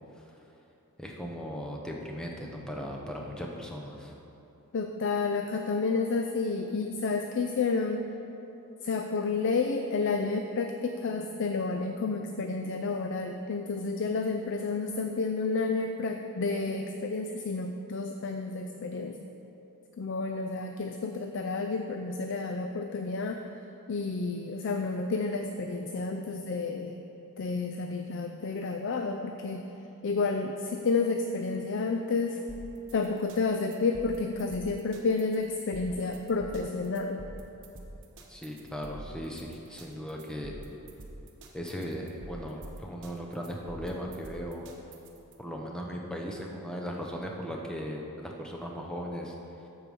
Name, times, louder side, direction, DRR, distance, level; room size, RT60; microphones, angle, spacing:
voice 1, 1.0-4.1 38.3-40.6 41.5-44.7 45.4-49.3, equal, 5° left, -1 dB, 0.8 m, -37 dB
voice 2, 4.7-8.1 8.8-19.2 20.0-23.4 23.9-27.0 27.4-29.7 30.0-32.4 32.9-37.2, left 4 dB, 55° left, 5 dB, 0.4 m, -30 dB
sound 1, 32.5-45.3, right 1 dB, 55° right, 1.0 m, -47 dB
13.5 x 4.8 x 5.4 m, 2.9 s
head